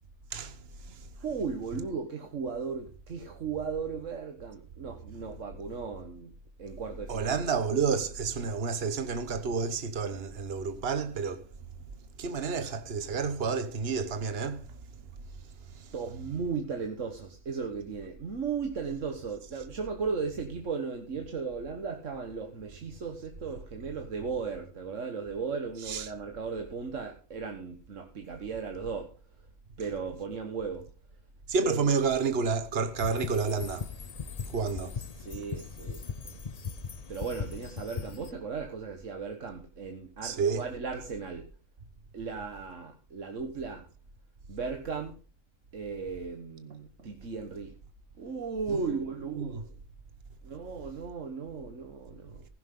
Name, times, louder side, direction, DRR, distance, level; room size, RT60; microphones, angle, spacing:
voice 1, 1.2-6.3 6.6-7.5 15.9-29.2 29.8-30.9 31.6-31.9 35.2-36.3 37.1-41.5 42.1-43.9 44.5-45.2 45.7-47.7 48.2-49.6 50.4-52.5, right 5 dB, 80° right, 1.8 m, -36 dB
voice 2, 7.1-11.4 12.2-14.6 15.7-15.9 25.9-26.1 31.5-33.9 34.4-35.0 40.2-40.6 48.7-49.0 49.3-49.6, right 5 dB, 55° right, 1.4 m, -30 dB
sound 1, 33.0-38.3, left 6 dB, 40° left, 0.7 m, -39 dB
15.5 x 11.5 x 3.8 m
omnidirectional pair, 1.3 m